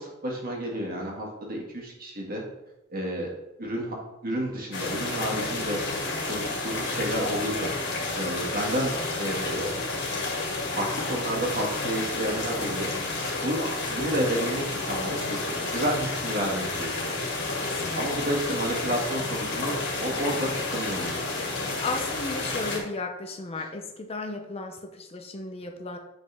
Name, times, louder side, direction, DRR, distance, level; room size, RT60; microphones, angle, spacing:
voice 1, 0.0-2.4 2.9-3.3 3.6-5.8 6.3-7.7 8.2-9.8 10.7-12.9 13.4-17.2 18.0-21.3, equal, 50° right, -1 dB, 1.8 m, -31 dB
sound 1, 4.7-22.8, left 3 dB, 60° left, 2.0 m, -31 dB
voice 2, 17.6-18.1 21.8-26.0, left 3 dB, 30° left, 4 dB, 0.6 m, -35 dB
8.3 x 5.3 x 3.4 m, 0.95 s
head